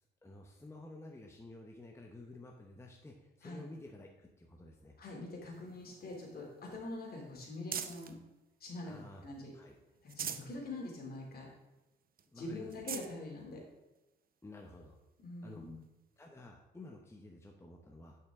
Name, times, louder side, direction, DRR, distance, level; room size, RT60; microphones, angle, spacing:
voice 1, 0.2-5.0 8.8-9.2 9.5-9.7 12.3-12.7 14.4-15.0 15.4-15.6 16.2-18.2, left 2 dB, 15° left, 1 dB, 0.9 m, -52 dB
voice 2, 5.0-8.2 8.6-9.5 10.0-11.5 12.3-13.6 15.2-15.8, left 2 dB, 50° left, -1 dB, 2.8 m, -44 dB
sound 1, 5.5-8.2 8.7-9.5 9.9-10.6 11.0-11.1 11.5-11.6 12.2-12.3 12.6-13.1 13.9-14.0 15.8-15.9, right 8 dB, 45° right, 0.7 m, -44 dB
10.5 x 5.8 x 3.7 m, 1.0 s
cardioid pair, 90°, 20 cm